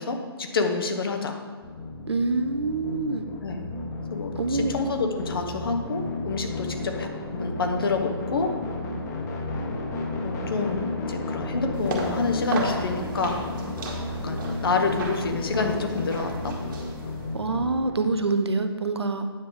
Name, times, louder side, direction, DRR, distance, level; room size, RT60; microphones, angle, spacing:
voice 1, 0.0-1.4 3.4-3.7 4.1-7.1 7.3-8.5 10.2-13.4 14.2-16.5, left 4 dB, 60° left, 5 dB, 1.2 m, -28 dB
sound 1, 1.6-18.1, left 2 dB, 40° left, 1.5 m, -33 dB
voice 2, 2.1-3.2 4.4-4.7 17.3-19.3, right 3 dB, 80° right, 8 dB, 0.8 m, -26 dB
sound 2, 11.7-17.4, right 3 dB, 50° right, 1.8 m, -35 dB
9.4 x 6.8 x 3.7 m, 1.5 s
figure-of-eight pair, 130°, 14 cm